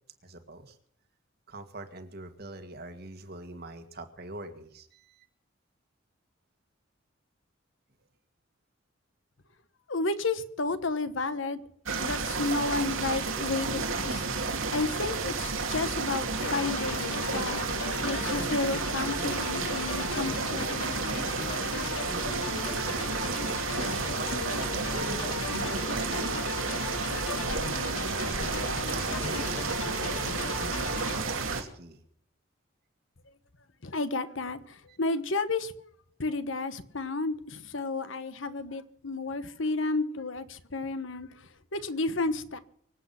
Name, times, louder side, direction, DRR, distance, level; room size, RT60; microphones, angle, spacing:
voice 1, 0.2-0.8 1.5-5.3 22.6-23.3 23.8-26.3 27.9-30.3 30.6-32.0 34.9-35.0, right 2 dB, 50° right, 1.9 m, -43 dB
voice 2, 9.9-11.6 12.0-14.2 14.7-17.6 18.0-21.0 33.8-34.6 35.0-35.7 36.2-41.3 41.7-42.6, left 3 dB, 70° left, 1.2 m, -32 dB
sound 1, 11.8-31.6, right 4 dB, 80° right, 2.5 m, -31 dB
sound 2, 16.4-31.2, left 4 dB, 90° left, 1.2 m, -37 dB
24.5 x 8.4 x 5.8 m
head